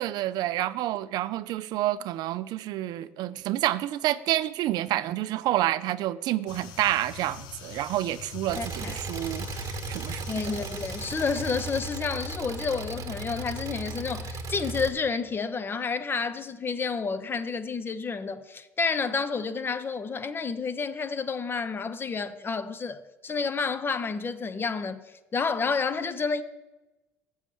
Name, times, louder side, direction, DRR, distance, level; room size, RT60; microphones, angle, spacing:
voice 1, 0.0-10.6, right 14 dB, 65° right, 0.3 m, -29 dB
sound 1, 6.5-11.8, left 7 dB, 70° left, 0.7 m, -42 dB
voice 2, 8.5-9.0 10.3-25.0 25.3-26.4, left 5 dB, 30° left, 0.7 m, -30 dB
Engine, 8.5-14.9, right 4 dB, 45° right, 1.1 m, -36 dB
7.2 x 6.4 x 6.8 m
supercardioid pair, 90°, 8 cm